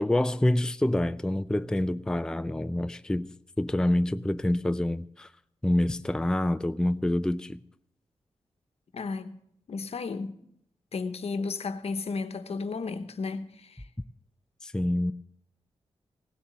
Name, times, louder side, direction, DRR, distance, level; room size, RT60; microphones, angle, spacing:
voice 1, 0.0-5.3 5.6-7.6 14.6-15.1, left 1 dB, 5° left, 0.4 m, -27 dB
voice 2, 8.9-9.3 9.7-10.4 10.9-13.9, left 4 dB, 70° left, 1.0 m, -33 dB
17.0 x 7.1 x 7.7 m
cardioid pair, 75°, 11 cm